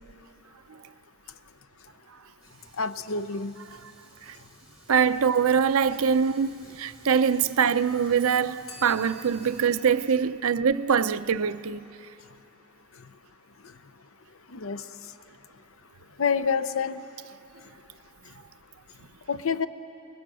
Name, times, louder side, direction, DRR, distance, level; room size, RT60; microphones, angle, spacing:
Fire, 2.4-9.7, right 1 dB, 5° right, 7.1 m, -54 dB
voice 1, 2.8-3.5 13.0-13.1 14.5-14.8 16.2-17.0 19.3-19.7, left 5 dB, 70° left, 0.7 m, -27 dB
voice 2, 4.9-11.8, right 6 dB, 85° right, 0.6 m, -23 dB
Bell, 8.7-11.5, equal, 50° left, 3.8 m, -51 dB
30.0 x 21.0 x 6.2 m
head